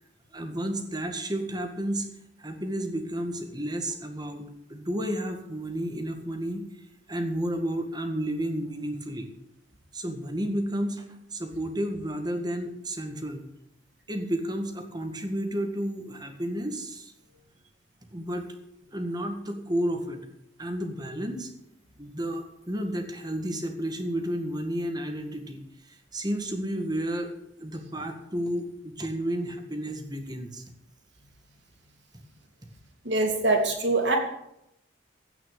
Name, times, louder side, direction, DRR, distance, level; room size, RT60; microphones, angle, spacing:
voice 1, 0.3-2.1 2.4-4.4 4.7-6.7 7.1-9.3 9.9-11.0 11.3-13.4 14.1-17.1 18.1-18.5 18.9-20.3 20.6-21.5 22.0-27.3 27.6-30.6, right 1 dB, 20° right, 5 dB, 1.8 m, -31 dB
voice 2, 33.0-34.2, right 2 dB, 75° right, 2 dB, 3.0 m, -23 dB
16.0 x 6.1 x 8.9 m, 0.81 s
head